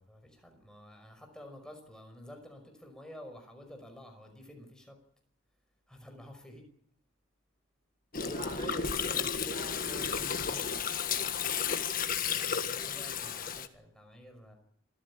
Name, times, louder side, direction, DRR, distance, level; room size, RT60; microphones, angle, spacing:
voice 1, 0.0-5.0 5.9-6.6 12.3-14.6, left 1 dB, 5° left, 4 dB, 5.5 m, -51 dB
Gurgling, 8.1-13.7, left 7 dB, 45° left, 1.6 m, -33 dB
voice 2, 8.2-10.4, right 1 dB, 35° right, 7 dB, 3.8 m, -45 dB
26.5 x 15.0 x 8.5 m, 0.69 s
head